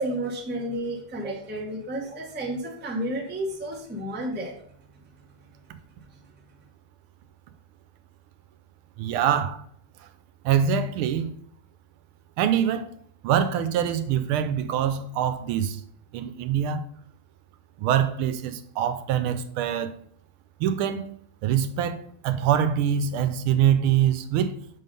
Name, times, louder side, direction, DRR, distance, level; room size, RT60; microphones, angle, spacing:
voice 1, 0.0-4.6, right 1 dB, 15° right, 0.4 m, -31 dB
voice 2, 9.0-9.6 10.4-11.3 12.4-12.9 13.2-15.8 16.1-16.8 17.8-19.9 20.6-21.1 21.4-24.6, right 9 dB, 90° right, 1.5 m, -24 dB
6.1 x 3.8 x 5.2 m
omnidirectional pair, 2.3 m